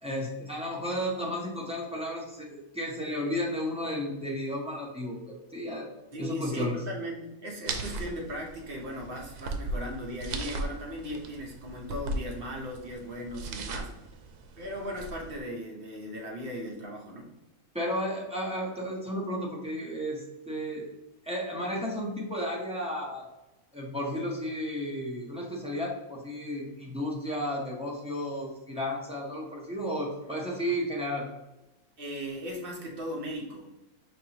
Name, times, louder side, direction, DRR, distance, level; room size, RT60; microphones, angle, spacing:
voice 1, 0.0-5.9 6.2-6.8 17.7-20.9 21.2-23.2 23.7-31.3, equal, 5° right, -4 dB, 0.6 m, -33 dB
voice 2, 6.1-13.9 14.6-17.3 32.0-33.7, equal, 45° right, -1 dB, 0.9 m, -37 dB
sound 1, 7.7-15.4, right 2 dB, 85° right, 1.1 m, -38 dB
5.3 x 3.0 x 2.9 m, 0.97 s
omnidirectional pair, 1.6 m